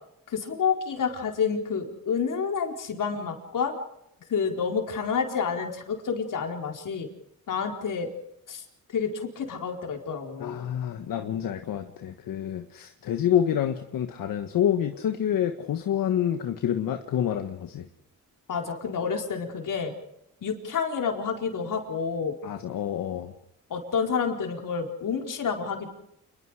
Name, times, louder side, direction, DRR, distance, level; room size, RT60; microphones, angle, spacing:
voice 1, 0.3-3.7 4.3-7.1 7.5-8.1 8.5-8.6 8.9-10.6 18.5-19.9 20.4-22.4 23.7-25.9, left 6 dB, 70° left, 2 dB, 4.6 m, -29 dB
voice 2, 10.4-17.9 22.4-23.3, left 10 dB, 85° left, 6 dB, 1.5 m, -27 dB
29.0 x 21.5 x 4.9 m, 0.79 s
cardioid pair, 85°, 33 cm